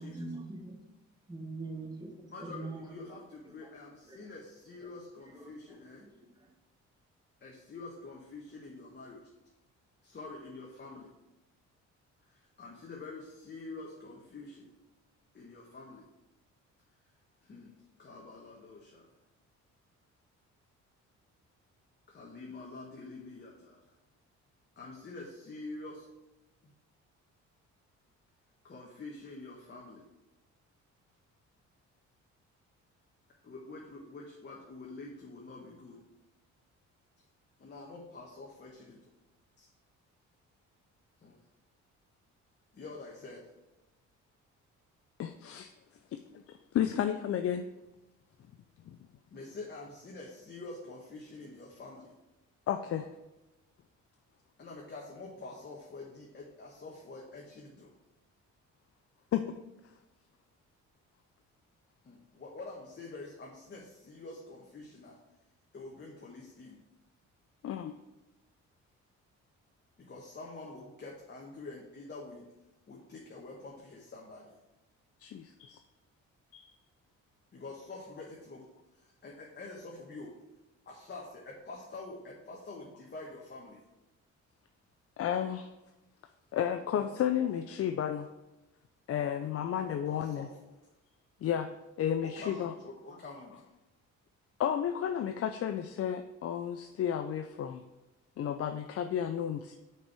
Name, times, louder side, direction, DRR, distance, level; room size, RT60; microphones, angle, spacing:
voice 1, 0.0-0.8 1.3-3.1 3.5-3.7 4.1-4.3 4.8-4.9 5.3-6.5, right 2 dB, 15° right, 0 dB, 1.6 m, -44 dB
voice 2, 2.3-6.0 7.4-9.3 10.0-11.1 12.2-14.7 15.3-16.0 17.4-19.1 22.1-23.8 24.8-26.1 26.6-26.7 28.6-30.1 33.4-36.0 37.6-39.1 39.6-39.7 41.2-41.4 42.7-43.5 49.3-52.1 54.6-57.9 62.0-65.2 65.7-66.8 70.0-72.4 72.9-74.5 77.5-78.7 78.9-80.3 80.9-83.8 86.9-87.5 89.8-90.6 92.2-93.6, left 3 dB, 35° left, -2 dB, 1.2 m, -47 dB
voice 3, 45.2-45.7 46.1-47.6 48.8-49.0 52.7-53.1 59.3-59.5 67.6-67.9 75.2-75.8 76.5-76.7 85.2-85.7 86.5-88.3 89.1-90.5 91.4-92.7 94.6-97.8 98.4-99.7, left 9 dB, 50° left, 7 dB, 0.5 m, -32 dB
5.9 x 4.6 x 4.8 m, 0.99 s
cardioid pair, 90°, 30 cm